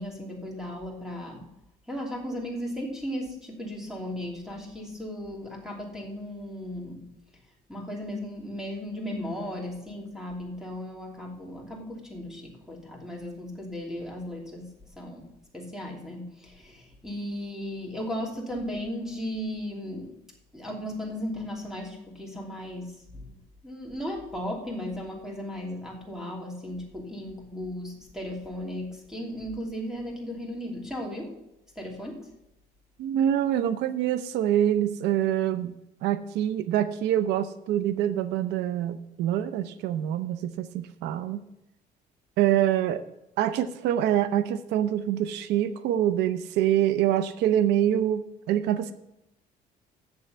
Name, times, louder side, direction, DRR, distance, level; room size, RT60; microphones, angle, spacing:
voice 1, 0.0-1.5 1.9-7.0 7.7-15.3 15.5-20.2 20.5-31.4 31.7-32.3, equal, 5° right, 0 dB, 2.9 m, -36 dB
voice 2, 33.0-35.7 36.0-41.4 42.4-43.0 43.4-48.9, right 11 dB, 85° right, 13 dB, 0.6 m, -25 dB
7.6 x 7.1 x 8.2 m, 0.86 s
cardioid pair, 110°, 17 cm